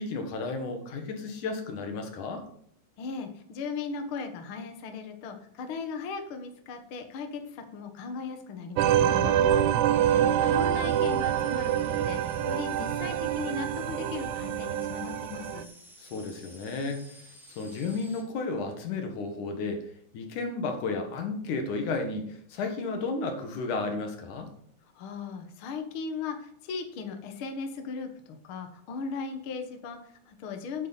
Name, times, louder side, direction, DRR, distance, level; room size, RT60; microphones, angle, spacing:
voice 1, 0.0-2.4 9.0-9.7 16.0-17.1 17.6-19.9 20.1-24.5, left 3 dB, 80° left, 5 dB, 3.0 m, -33 dB
voice 2, 3.0-9.3 10.0-15.7 25.0-28.1 28.4-30.9, left 5 dB, 55° left, 5 dB, 1.8 m, -37 dB
sound 1, 8.8-15.6, right 10 dB, 80° right, 2.0 m, -26 dB
sound 2, 9.8-18.2, equal, ahead, 1.6 m, -52 dB
9.6 x 8.9 x 4.1 m, 0.65 s
omnidirectional pair, 3.5 m